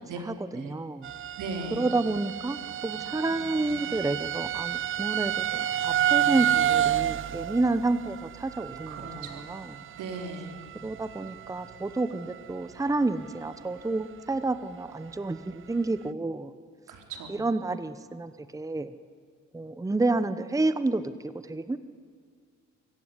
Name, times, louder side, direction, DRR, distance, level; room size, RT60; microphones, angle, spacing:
voice 1, 0.3-1.1 1.7-2.6 2.8-9.7 10.8-16.5 17.3-18.9 19.5-21.8, right 2 dB, 10° right, 12 dB, 0.9 m, -30 dB
sound 1, 1.0-11.7 12.0-12.5 13.0-13.1 13.5-13.6, right 11 dB, 45° right, 0.5 m, -30 dB
voice 2, 1.4-1.9 8.9-10.6 16.9-17.4, right 3 dB, 85° right, 3 dB, 3.9 m, -38 dB
24.5 x 15.0 x 9.8 m, 2.1 s
cardioid pair, 90°, 30 cm